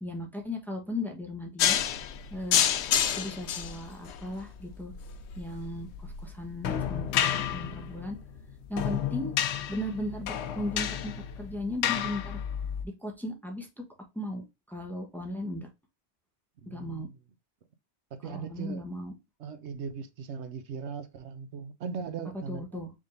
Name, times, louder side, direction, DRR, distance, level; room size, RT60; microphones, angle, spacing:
voice 1, 0.0-1.8 2.3-2.6 3.1-4.9 5.4-8.2 8.7-9.3 9.7-12.4 13.0-13.8 14.1-15.7 16.7-17.1 18.2-19.1 22.5-22.9, left 1 dB, ahead, 1.0 m, -36 dB
sound 1, 1.6-12.8, left 9 dB, 90° left, 0.9 m, -30 dB
voice 2, 16.6-17.2 18.1-18.8 19.4-22.8, right 6 dB, 85° right, 1.1 m, -39 dB
4.9 x 3.7 x 2.6 m
omnidirectional pair, 1.1 m